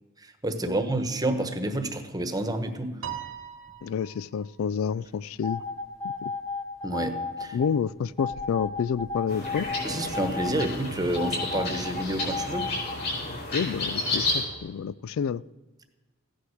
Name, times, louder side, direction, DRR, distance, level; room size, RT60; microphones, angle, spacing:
voice 1, 0.2-3.0 6.8-7.6 9.8-12.7, right 1 dB, 20° right, 8 dB, 1.2 m, -29 dB
Piano, 3.0-4.6, right 9 dB, 75° right, 1.5 m, -39 dB
voice 2, 3.8-5.6 6.2-6.3 7.5-9.7 13.5-15.4, left 7 dB, 75° left, 20 dB, 0.3 m, -29 dB
sound 1, 5.4-7.7 8.2-10.7 11.2-12.9, left 4 dB, 20° left, 1.9 m, -33 dB
sound 2, 9.3-14.4, left 2 dB, 50° left, 5.6 m, -31 dB
15.0 x 9.9 x 6.3 m, 1.2 s
head